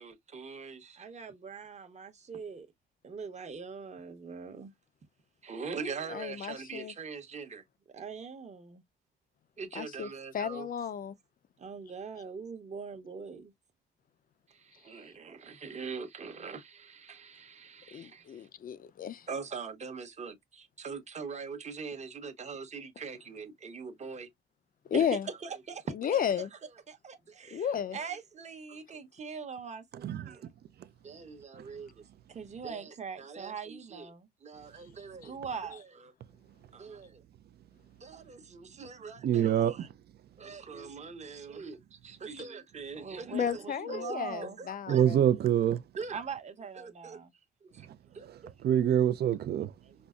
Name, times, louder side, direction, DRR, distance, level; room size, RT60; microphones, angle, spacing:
voice 1, 0.0-2.7 3.0-4.7 5.4-7.6 7.9-8.8 9.6-10.7 11.6-13.5 14.5-18.5 19.3-24.3 24.9-26.4 26.9-30.5 31.0-36.1 36.7-37.2 38.0-39.9 40.4-45.1 46.0-47.3 47.6-47.9 48.1-48.8 49.8-49.9, right 5 dB, 35° right, 0.9 m, -42 dB
voice 2, 6.1-6.9 9.7-11.2 17.9-19.3 24.9-25.3 25.9-26.5 27.5-28.0 35.2-35.3 43.3-45.2, left 8 dB, 45° left, 0.5 m, -33 dB
voice 3, 30.0-30.4 31.6-31.7 39.2-39.9 44.9-45.8 47.8-48.0 48.3-49.7, right 10 dB, 55° right, 0.5 m, -26 dB
5.3 x 2.0 x 2.3 m
cardioid pair, 90°, 20 cm